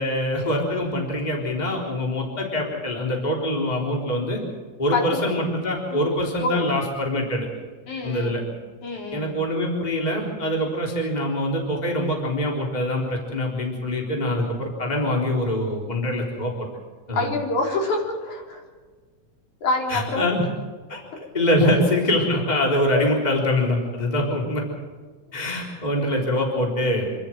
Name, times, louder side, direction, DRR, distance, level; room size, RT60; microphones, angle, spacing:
voice 1, 0.0-4.4 4.8-7.5 8.0-8.4 9.1-16.5 17.1-17.3 19.9-20.5 20.9-21.0 21.3-24.6 25.3-27.1, left 1 dB, 10° left, 0 dB, 3.8 m, -24 dB
voice 2, 7.9-8.4 8.8-9.3 10.6-10.7 17.1-18.6 19.6-20.2, left 2 dB, 65° left, 0 dB, 5.3 m, -26 dB
27.0 x 13.5 x 7.7 m, 1.5 s
omnidirectional pair, 3.7 m